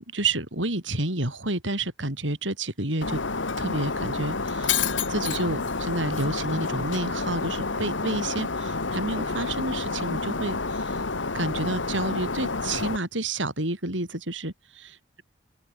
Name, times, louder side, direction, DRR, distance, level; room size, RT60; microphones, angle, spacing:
voice 1, 0.0-3.2 3.6-11.0 11.3-15.2, right 2 dB, 90° right, 7.4 m, -30 dB
Shatter, 3.0-13.0, left 4 dB, 85° left, 1.9 m, -29 dB
open air
head